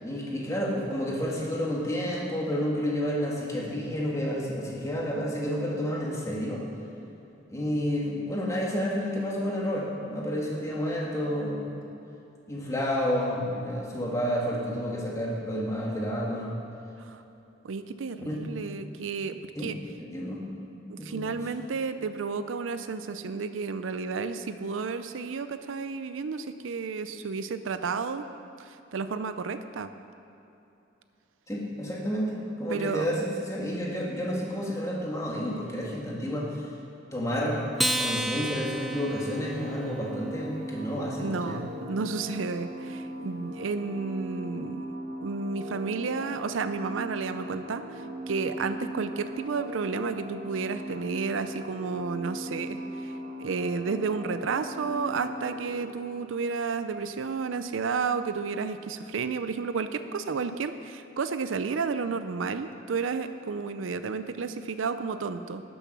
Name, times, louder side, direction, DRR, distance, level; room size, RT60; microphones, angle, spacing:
voice 1, 0.0-6.6 7.5-11.7 12.5-16.5 18.3-18.7 19.5-19.7 20.0-20.4 21.0-21.4 31.5-36.6 37.1-37.6 38.0-41.6, equal, 15° left, -3 dB, 1.7 m, -30 dB
voice 2, 17.6-19.8 20.9-28.2 28.6-29.9 32.7-33.1 41.2-44.9 45.2-53.1 53.4-65.6, right 5 dB, 85° right, 10 dB, 0.5 m, -32 dB
Acoustic guitar, 37.8-40.4, equal, ahead, 0.4 m, -31 dB
sound 1, 38.3-55.9, equal, 65° right, 2.3 m, -39 dB
11.5 x 7.0 x 6.1 m, 2.9 s
head